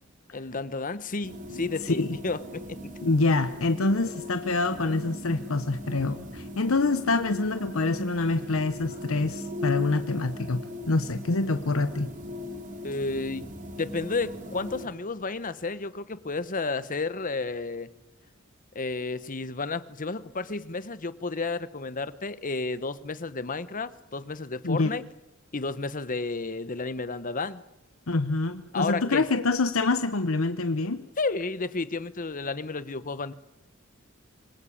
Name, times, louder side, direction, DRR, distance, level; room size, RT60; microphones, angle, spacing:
voice 1, 0.3-2.8 12.8-17.9 18.7-25.0 25.5-27.6 28.7-29.2 31.2-33.3, left 3 dB, 40° left, 14 dB, 1.1 m, -32 dB
sound 1, 1.2-14.9, left 2 dB, 40° right, 4.1 m, -39 dB
voice 2, 1.6-2.2 3.0-10.6 10.9-12.1 24.6-24.9 28.1-31.0, left 3 dB, 90° left, 10 dB, 1.0 m, -26 dB
26.5 x 21.5 x 8.6 m, 0.91 s
head